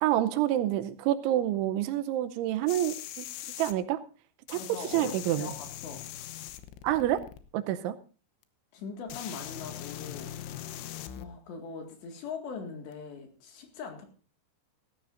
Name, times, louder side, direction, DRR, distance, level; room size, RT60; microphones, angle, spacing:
voice 1, 0.0-3.3 3.6-4.0 4.5-4.6 4.9-5.5 6.8-7.2 7.5-8.0, right 13 dB, 80° right, 12 dB, 3.1 m, -27 dB
sound 1, 2.7-3.7 4.5-7.4 8.4-8.5 9.1-11.3 12.9-13.0, left 12 dB, 80° left, 3.5 m, -41 dB
voice 2, 4.5-6.0 8.7-10.3 11.2-14.1, left 5 dB, 65° left, 4 dB, 4.1 m, -41 dB
18.0 x 14.5 x 2.6 m, 0.36 s
omnidirectional pair, 5.7 m